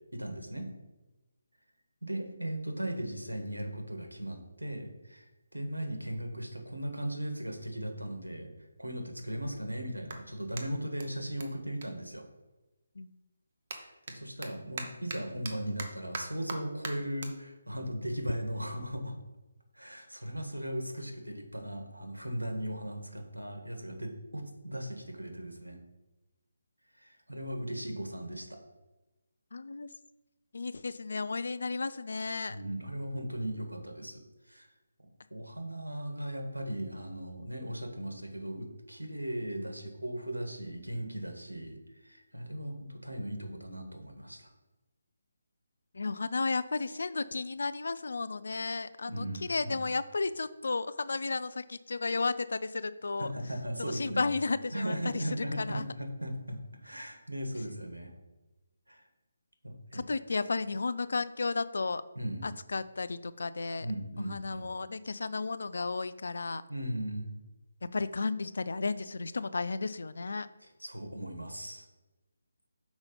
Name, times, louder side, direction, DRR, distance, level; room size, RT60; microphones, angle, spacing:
voice 1, 0.1-0.7 2.0-5.2 5.5-8.5 8.8-12.2 13.8-19.1 19.7-25.8 26.9-28.6 32.5-34.7 35.3-44.5 49.0-49.8 53.2-54.3 54.7-58.1 58.9-59.0 59.6-60.0 62.1-62.5 63.8-64.7 66.7-67.3 70.8-71.9, right 1 dB, 80° right, 4 dB, 1.5 m, -37 dB
Clapping, 10.0-12.8 13.1-19.7, right 3 dB, 40° right, 1.0 m, -45 dB
voice 2, 29.5-29.9 30.5-32.6 45.9-53.3 53.9-55.8 59.9-62.0 62.4-63.9 64.2-66.6 67.8-70.5, left 3 dB, 55° left, 14 dB, 0.4 m, -33 dB
6.2 x 4.8 x 5.4 m, 1.1 s
figure-of-eight pair, 150°, 0 cm